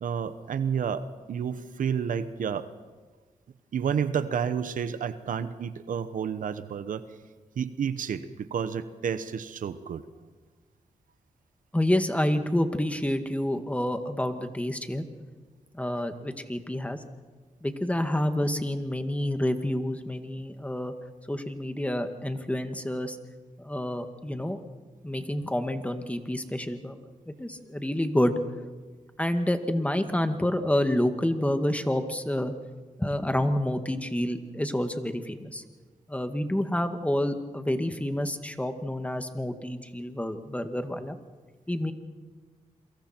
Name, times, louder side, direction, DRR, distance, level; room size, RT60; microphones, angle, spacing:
voice 1, 0.0-2.7 3.7-7.0 7.6-10.0, right 7 dB, 75° right, 12 dB, 1.0 m, -30 dB
voice 2, 11.7-15.0 15.7-17.0 17.6-20.9 21.3-23.2 23.6-24.6 25.0-27.0 27.3-28.4 29.2-32.5 33.0-35.6 36.1-41.2 41.7-41.9, left 1 dB, 10° left, 7 dB, 2.0 m, -28 dB
28.0 x 23.5 x 4.5 m, 1.4 s
cardioid pair, 65°, 14 cm